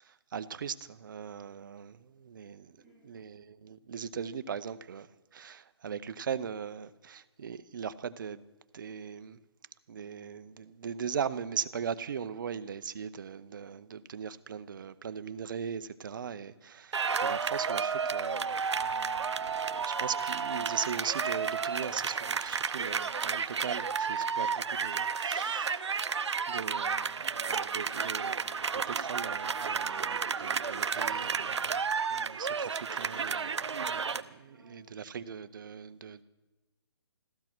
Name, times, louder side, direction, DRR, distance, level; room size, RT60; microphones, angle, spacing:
voice 1, 0.0-2.8 3.0-8.4 8.7-9.4 9.9-19.4 20.0-26.0 26.5-31.8 32.1-36.2, right 7 dB, 45° right, 0.7 m, -39 dB
voice 2, 2.7-3.0 19.4-20.1 34.4-34.8, left 2 dB, 5° right, 6.4 m, -57 dB
sound 1, 16.9-34.2, right 6 dB, 80° right, 0.8 m, -32 dB
15.5 x 13.5 x 6.0 m
hypercardioid pair, 165°, 14 cm